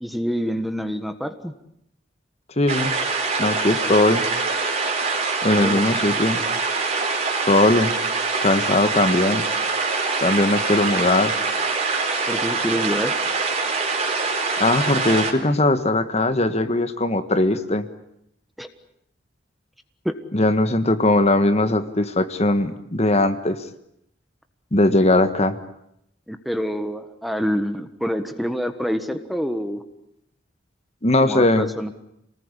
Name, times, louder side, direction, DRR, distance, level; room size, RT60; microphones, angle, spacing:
voice 1, 0.0-1.5 5.5-5.8 12.3-13.1 18.6-18.7 20.0-20.1 26.3-29.8 31.2-31.9, equal, ahead, 8 dB, 1.4 m, -26 dB
voice 2, 2.6-3.0 3.4-4.2 5.4-6.4 7.4-7.9 8.4-9.4 10.2-11.3 14.6-17.8 20.3-23.6 24.7-25.6 31.0-31.7, left 2 dB, 35° left, 10 dB, 1.5 m, -19 dB
sound 1, 2.7-15.3, right 4 dB, 35° right, 4.2 m, -24 dB
28.0 x 19.5 x 9.9 m, 0.78 s
head